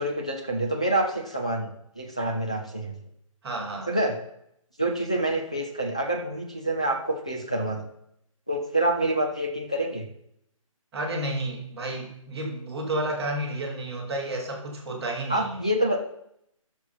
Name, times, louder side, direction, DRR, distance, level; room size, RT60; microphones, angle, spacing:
voice 1, 0.0-3.0 3.9-4.2 4.8-7.9 8.5-10.1 15.3-16.1, right 1 dB, 10° left, 0 dB, 0.4 m, -27 dB
voice 2, 3.4-3.9 10.9-15.6, right 1 dB, 5° right, -11 dB, 1.1 m, -31 dB
15.0 x 6.3 x 4.0 m, 0.74 s
hypercardioid pair, 180°, 18 cm